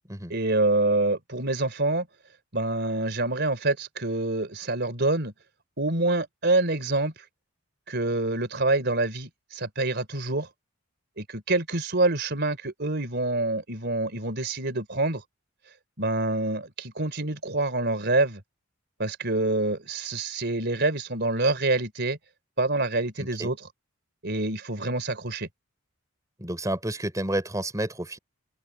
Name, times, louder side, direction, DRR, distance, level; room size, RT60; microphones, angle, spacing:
voice 1, 0.3-2.1 2.5-5.3 5.8-7.1 7.9-10.5 11.2-15.2 16.0-18.4 19.0-22.2 22.6-23.6 24.2-25.5, right 2 dB, 50° right, 3.7 m, -26 dB
voice 2, 23.2-23.5 26.4-28.2, right 1 dB, 15° right, 3.4 m, -30 dB
open air
head